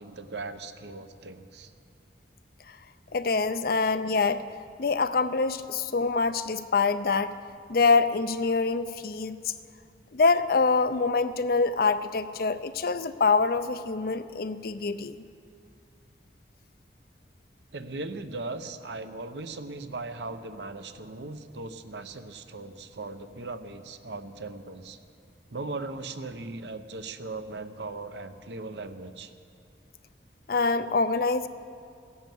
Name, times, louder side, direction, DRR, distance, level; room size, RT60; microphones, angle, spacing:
voice 1, 0.0-1.7 17.7-25.0 25.5-29.3, right 3 dB, 75° right, 9 dB, 0.8 m, -38 dB
voice 2, 3.1-4.4 4.8-7.3 7.7-9.4 10.1-15.2 30.5-31.5, left 4 dB, 55° left, 12 dB, 0.5 m, -25 dB
15.0 x 11.0 x 7.7 m, 2.4 s
head